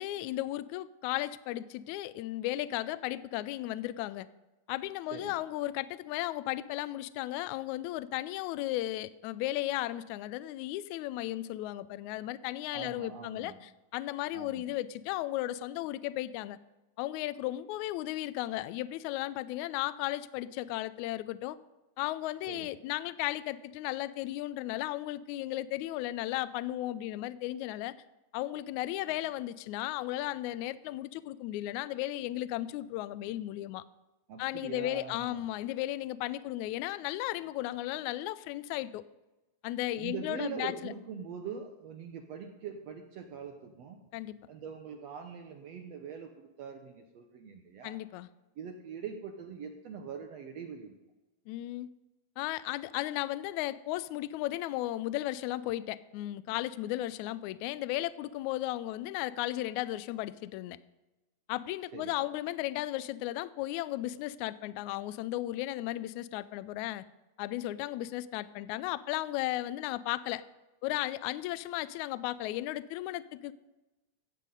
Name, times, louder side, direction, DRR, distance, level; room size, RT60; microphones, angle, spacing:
voice 1, 0.0-4.3 4.7-16.6 17.0-21.6 22.0-27.9 28.3-33.8 34.4-39.0 39.6-40.9 44.1-44.4 47.8-48.3 51.5-51.9 52.4-60.8 61.5-67.0 67.4-70.4 70.8-73.5, left 15 dB, 85° left, 16 dB, 1.7 m, -35 dB
voice 2, 12.7-13.6 14.3-14.7 22.4-22.7 34.3-35.5 40.0-44.0 44.5-48.0 48.6-51.0 61.9-62.3, right 6 dB, 70° right, 4 dB, 1.7 m, -43 dB
15.5 x 8.4 x 5.4 m, 1.1 s
omnidirectional pair, 3.8 m